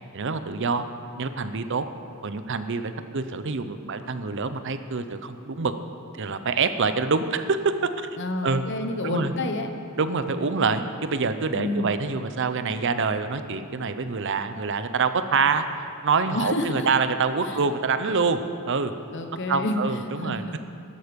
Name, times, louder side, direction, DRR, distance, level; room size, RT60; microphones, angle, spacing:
voice 1, 0.1-0.8 1.2-1.8 2.2-5.7 6.1-8.1 8.4-8.6 9.0-9.3 10.0-15.6 16.0-18.4 18.7-18.9 19.5-20.6, right 4 dB, 55° right, 10 dB, 0.7 m, -26 dB
voice 2, 8.2-9.7 11.5-11.9 16.3-16.9 17.4-17.6 19.1-19.8 20.2-20.5, left 2 dB, 55° left, 6 dB, 1.1 m, -29 dB
13.0 x 12.5 x 5.3 m, 2.4 s
head